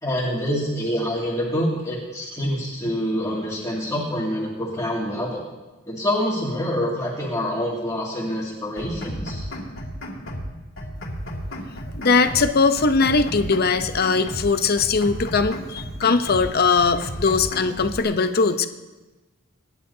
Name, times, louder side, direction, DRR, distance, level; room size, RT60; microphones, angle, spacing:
voice 1, 0.0-5.4 5.9-9.5, equal, 15° left, -6 dB, 2.3 m, -26 dB
sound 1, 8.8-10.5 10.8-12.5 12.8-14.5 14.8-16.5 16.8-18.0, equal, 75° left, 2.6 m, -33 dB
voice 2, 11.9-18.7, left 4 dB, 50° left, 8 dB, 0.8 m, -20 dB
26.5 x 10.5 x 2.8 m, 1.2 s
head